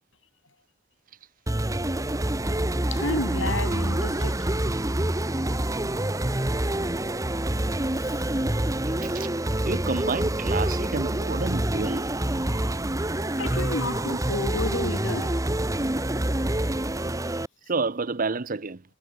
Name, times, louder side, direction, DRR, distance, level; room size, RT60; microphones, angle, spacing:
sound 1, 1.5-17.5, right 1 dB, 15° right, 1.1 m, -27 dB
voice 1, 2.9-4.5 8.0-8.2 13.4-15.4, left 2 dB, 70° left, 7.8 m, -31 dB
voice 2, 9.6-12.1 14.1-14.2 17.7-18.8, right 4 dB, 45° right, 0.8 m, -29 dB
head